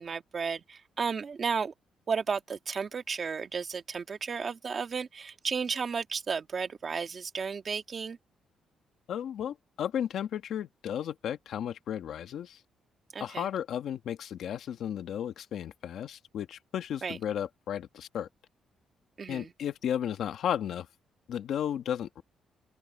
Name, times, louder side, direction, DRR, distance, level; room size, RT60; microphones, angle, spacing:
voice 1, 0.0-1.7 2.1-8.2 13.1-13.5 17.0-17.2 19.2-19.5, right 5 dB, 30° right, 1.7 m, -33 dB
voice 2, 9.1-12.6 13.2-18.3 19.3-20.9 21.3-22.2, left 9 dB, 60° left, 1.4 m, -34 dB
open air
cardioid pair, 175°, 0 cm